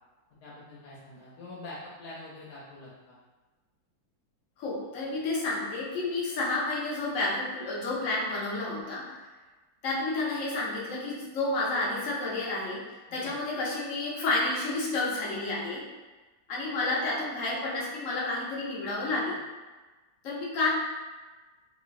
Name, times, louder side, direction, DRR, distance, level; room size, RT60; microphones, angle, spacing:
voice 1, 0.4-3.2 13.1-13.3, left 2 dB, 85° left, -7 dB, 1.2 m, -45 dB
voice 2, 4.6-9.2 9.8-15.9 16.5-19.4 20.2-20.7, left 2 dB, 60° left, -4 dB, 1.0 m, -30 dB
3.0 x 2.6 x 2.4 m, 1.2 s
omnidirectional pair, 1.7 m